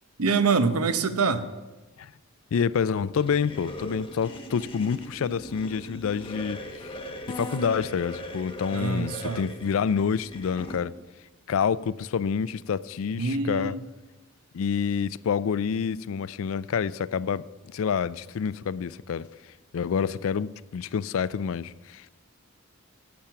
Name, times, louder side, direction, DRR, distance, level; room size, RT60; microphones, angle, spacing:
voice 1, 0.2-1.4 8.7-9.4 13.2-13.8, right 4 dB, 85° right, 0.8 m, -25 dB
voice 2, 2.5-7.0 7.3-10.9 11.5-13.8 14.5-17.5 17.7-19.3 19.7-22.1, left 6 dB, 70° left, 0.3 m, -28 dB
sound 1, 3.2-10.8, equal, 25° left, 1.2 m, -39 dB
12.0 x 8.8 x 5.8 m
head